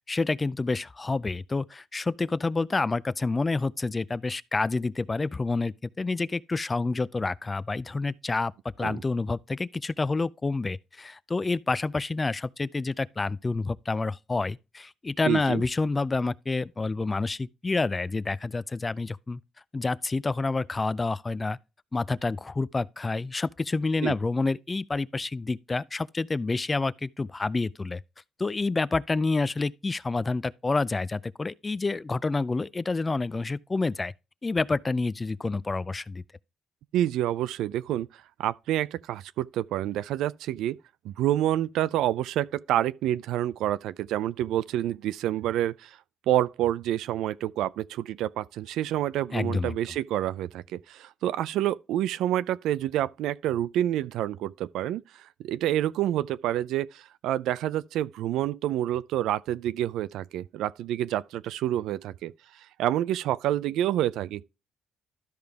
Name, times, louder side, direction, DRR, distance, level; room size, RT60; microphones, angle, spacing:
voice 1, 0.1-8.5 8.8-19.4 19.7-21.6 21.9-28.0 28.4-34.1 34.4-36.2 49.3-49.7, left 3 dB, 25° left, 0.4 m, -28 dB
voice 2, 15.3-15.6 24.0-24.1 36.9-38.1 38.4-40.8 41.0-46.0 46.3-62.3 62.8-64.4, right 12 dB, 85° right, 0.4 m, -28 dB
13.0 x 5.1 x 3.4 m
cardioid pair, 90°, 0 cm